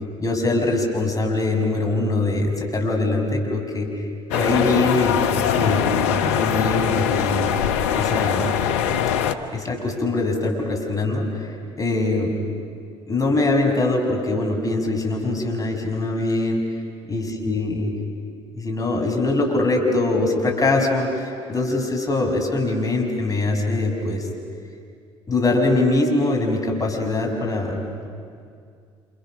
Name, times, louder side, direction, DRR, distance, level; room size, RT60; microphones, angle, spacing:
voice 1, 0.2-3.9 4.3-7.7 7.9-8.5 9.5-12.3 13.1-16.6 17.1-17.9 18.6-24.3 25.3-28.1, left 2 dB, 25° left, 1 dB, 6.2 m, -23 dB
sound 1, 4.3-9.3, left 8 dB, 80° left, 1.0 m, -22 dB
29.5 x 27.5 x 6.5 m, 2.3 s
hypercardioid pair, 55°, 15 cm